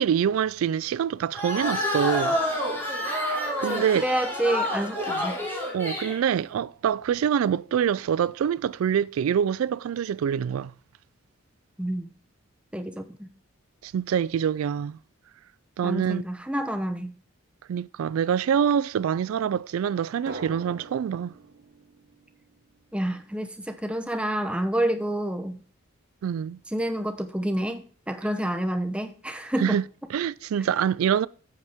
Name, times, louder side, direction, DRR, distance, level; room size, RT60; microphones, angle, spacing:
voice 1, 0.0-2.4 3.6-4.1 5.0-5.3 5.7-10.7 13.8-15.0 15.8-16.2 17.7-21.3 26.2-26.6 29.6-29.8 30.1-31.3, right 8 dB, 85° right, 0.3 m, -25 dB
sound 1, 1.3-6.2, left 1 dB, 10° left, 2.7 m, -28 dB
voice 2, 3.7-5.3 11.8-12.1 12.7-13.3 15.8-17.1 22.9-25.6 26.7-29.8, right 1 dB, 5° right, 0.7 m, -28 dB
Drum, 20.3-23.0, right 2 dB, 50° right, 1.4 m, -43 dB
9.3 x 8.2 x 3.5 m
head